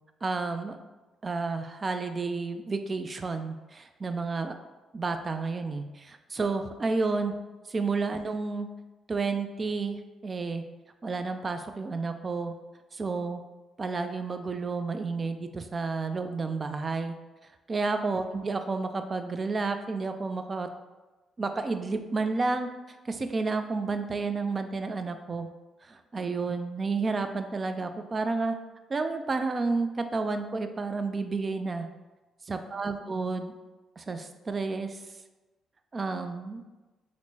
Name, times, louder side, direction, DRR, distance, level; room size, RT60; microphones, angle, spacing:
voice 1, 0.2-0.8 1.2-4.5 4.9-7.3 7.7-8.7 9.1-10.0 10.2-10.6 11.0-12.5 12.9-13.4 13.8-17.1 17.7-20.7 21.4-22.7 23.1-25.5 25.9-28.6 28.9-31.9 32.5-33.5 34.0-35.0 35.9-36.6, right 4 dB, 40° right, 8 dB, 0.3 m, -31 dB
4.2 x 2.1 x 2.7 m, 1.1 s
supercardioid pair, 55°, 0 cm